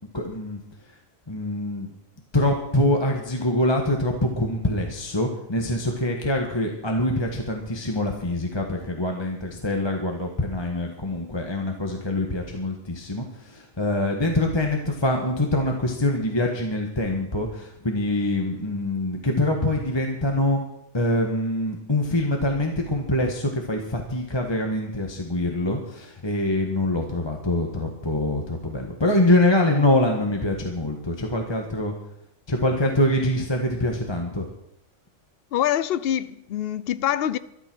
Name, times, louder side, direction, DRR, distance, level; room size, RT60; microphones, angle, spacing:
voice 1, 0.1-0.6 1.3-1.9 2.3-20.6 20.9-31.9 32.5-34.5, left 1 dB, 20° left, 1.6 m, -24 dB
voice 2, 35.5-37.4, left 11 dB, 55° left, 0.7 m, -25 dB
13.0 x 12.0 x 6.2 m
omnidirectional pair, 1.4 m